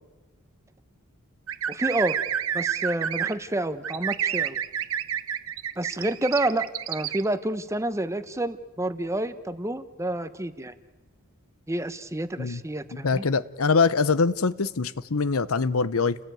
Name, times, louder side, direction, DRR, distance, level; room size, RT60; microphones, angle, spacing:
sound 1, 1.5-3.3 3.8-7.2, right 9 dB, 70° right, 1.0 m, -29 dB
voice 1, 1.7-2.2 2.5-4.6 5.8-10.7 11.7-13.2, right 1 dB, 15° right, 0.9 m, -29 dB
voice 2, 12.9-16.2, left 4 dB, 75° left, 0.8 m, -23 dB
30.0 x 18.5 x 9.2 m
head